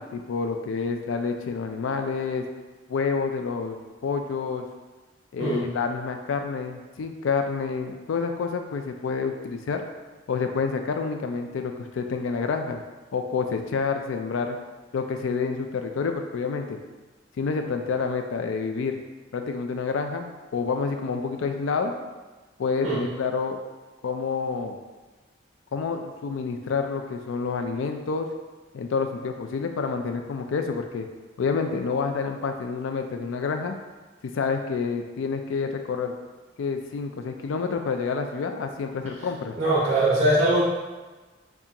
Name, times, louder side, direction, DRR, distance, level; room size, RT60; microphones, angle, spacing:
voice 1, 0.0-2.5 2.9-4.6 5.3-9.8 10.3-12.8 13.1-14.6 14.9-16.8 17.4-19.0 19.3-21.9 22.6-23.6 24.0-24.8 25.7-28.3 28.7-31.1 31.4-33.8 34.2-36.2 36.6-39.6, left 5 dB, 90° left, 5 dB, 0.4 m, -28 dB
voice 2, 39.5-40.6, right 1 dB, 35° right, -6 dB, 1.0 m, -21 dB
6.8 x 2.4 x 2.9 m, 1.3 s
head